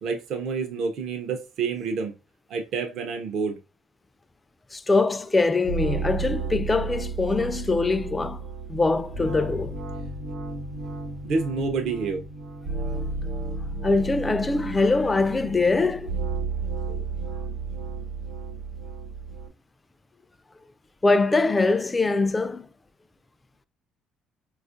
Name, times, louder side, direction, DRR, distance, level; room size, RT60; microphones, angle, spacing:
voice 1, 0.0-2.1 2.5-3.6 11.2-12.2, right 4 dB, 65° right, 0.5 m, -28 dB
voice 2, 4.7-8.4 8.7-9.7 13.8-16.1 21.0-22.7, left 3 dB, 20° left, 0.3 m, -23 dB
sound 1, 5.6-19.5, right 3 dB, 80° right, 0.9 m, -33 dB
4.2 x 2.4 x 2.5 m
supercardioid pair, 75°, 0 cm